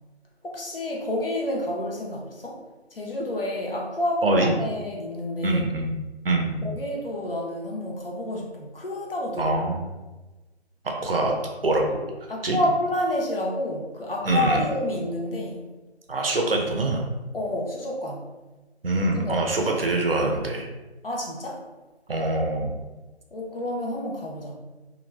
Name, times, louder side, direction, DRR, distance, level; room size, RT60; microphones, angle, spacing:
voice 1, 0.4-2.6 2.9-5.6 6.6-9.5 12.3-15.7 17.3-18.2 19.1-19.7 21.0-21.6 23.3-24.5, left 1 dB, 55° left, -1 dB, 0.6 m, -29 dB
voice 2, 4.2-4.5 5.4-6.0 6.2-6.7 9.4-9.8 10.8-11.3 11.6-12.0 12.4-12.6 14.2-14.6 16.1-17.1 18.8-20.7 22.1-22.8, right 2 dB, 60° right, 1 dB, 0.5 m, -24 dB
2.3 x 2.1 x 3.1 m, 1.2 s
figure-of-eight pair, 170°, 34 cm